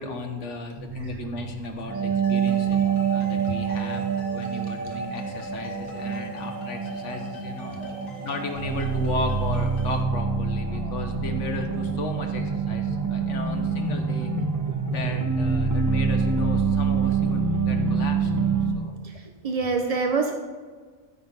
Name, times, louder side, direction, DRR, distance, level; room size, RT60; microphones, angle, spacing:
voice 1, 0.0-7.8 8.2-14.3 14.9-19.0 19.6-20.0, left 3 dB, 60° left, 4 dB, 1.3 m, -35 dB
sound 1, 0.8-18.7, right 5 dB, 15° right, 1.0 m, -26 dB
sound 2, 2.2-10.0, left 1 dB, 80° left, 2.1 m, -44 dB
voice 2, 2.9-3.2 7.6-8.1 10.8-10.9 15.7-15.8 19.0-19.2 19.4-20.3, right 4 dB, 45° right, 4 dB, 0.4 m, -28 dB
13.5 x 5.7 x 3.9 m, 1.5 s
omnidirectional pair, 1.5 m